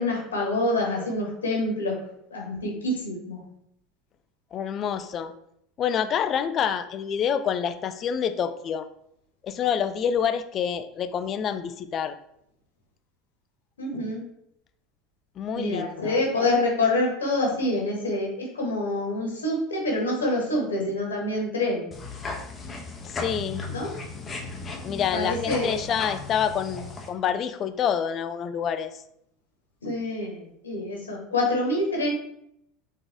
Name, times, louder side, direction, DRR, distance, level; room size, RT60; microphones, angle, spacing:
voice 1, 0.0-2.0 2.3-3.4 13.8-14.2 15.5-21.9 23.7-24.0 25.1-25.8 29.8-32.1, left 2 dB, 85° left, -1 dB, 1.2 m, -26 dB
voice 2, 4.5-5.3 5.8-8.9 9.4-12.2 15.4-16.2 23.0-23.6 24.8-29.0, left 8 dB, 40° left, 11 dB, 0.4 m, -27 dB
sound 1, 21.9-27.1, left 3 dB, 25° left, 0.9 m, -36 dB
3.9 x 3.7 x 3.4 m, 0.74 s
hypercardioid pair, 80°, 0 cm